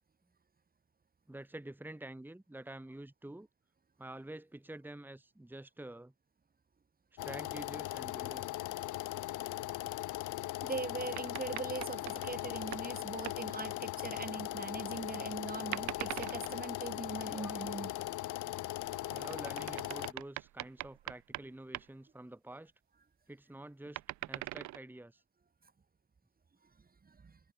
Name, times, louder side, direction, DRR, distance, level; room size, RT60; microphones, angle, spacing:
voice 1, 1.3-3.5 4.0-6.1 7.2-8.6 17.3-17.8 19.1-22.7 23.3-25.2, right 1 dB, 5° right, 1.9 m, -48 dB
sound 1, 7.2-20.1, left 16 dB, 85° left, 1.0 m, -39 dB
voice 2, 10.6-18.1 27.0-27.4, right 4 dB, 30° right, 2.2 m, -41 dB
sound 2, 11.2-12.9 13.2-13.5 15.7-16.6 18.8-21.5 21.7-21.8 23.9-24.8, right 17 dB, 70° right, 0.4 m, -42 dB
cardioid pair, 90°, 30 cm